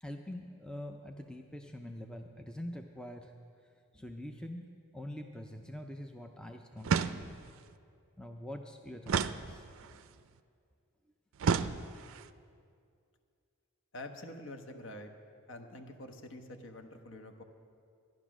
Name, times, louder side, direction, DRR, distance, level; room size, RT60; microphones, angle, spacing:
voice 1, 0.0-3.3 3.9-4.7 4.9-7.4 8.2-10.0, left 1 dB, 5° left, 4 dB, 0.4 m, -45 dB
sound 1, 6.8-7.6 9.1-10.0 11.4-12.3, right 6 dB, 70° right, 0.4 m, -32 dB
voice 2, 13.9-15.1 15.5-17.4, left 1 dB, 60° left, 5 dB, 1.0 m, -46 dB
12.5 x 10.5 x 6.1 m, 2.3 s
head